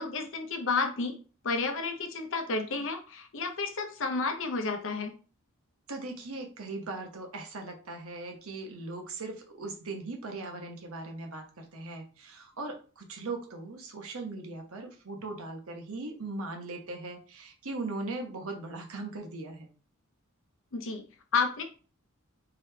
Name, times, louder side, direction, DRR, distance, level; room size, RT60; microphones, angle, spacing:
voice 1, 0.0-5.1 20.7-21.0 21.3-21.6, left 4 dB, 65° left, 5 dB, 0.7 m, -31 dB
voice 2, 5.9-19.7, right 3 dB, 80° right, 3 dB, 0.9 m, -39 dB
3.9 x 3.4 x 2.8 m, 0.37 s
head